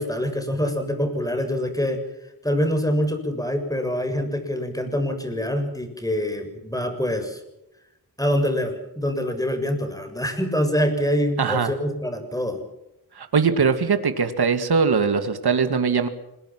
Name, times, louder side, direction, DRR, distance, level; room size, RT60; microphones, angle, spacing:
voice 1, 0.0-2.0 2.4-7.4 8.2-12.6, equal, 10° left, 6 dB, 7.0 m, -25 dB
voice 2, 11.4-11.7 13.2-16.1, right 5 dB, 70° right, 8 dB, 2.3 m, -21 dB
27.0 x 22.0 x 6.1 m, 0.92 s
cardioid pair, 65°, 39 cm